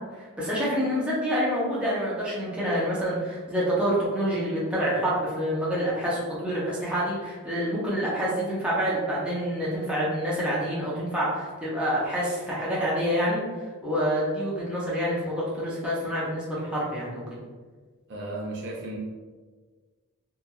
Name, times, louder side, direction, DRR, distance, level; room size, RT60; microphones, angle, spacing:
voice 1, 0.2-17.4, equal, 5° right, -8 dB, 0.6 m, -27 dB
voice 2, 18.1-19.0, right 1 dB, 55° right, -3 dB, 0.5 m, -34 dB
2.9 x 2.4 x 2.3 m, 1.4 s
head